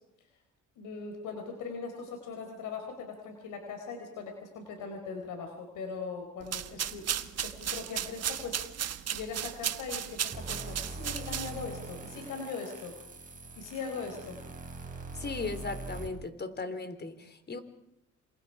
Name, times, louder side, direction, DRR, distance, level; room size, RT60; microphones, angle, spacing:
voice 1, 0.8-12.9 13.6-14.4, left 4 dB, 85° left, 3 dB, 4.6 m, -40 dB
sound 1, 6.4-11.8, right 9 dB, 55° right, 1.3 m, -35 dB
sound 2, 10.3-16.1, right 3 dB, 25° right, 5.6 m, -43 dB
voice 2, 15.1-17.6, left 3 dB, 35° left, 10 dB, 3.7 m, -37 dB
28.5 x 27.5 x 4.9 m, 0.83 s
cardioid pair, 90°, 30 cm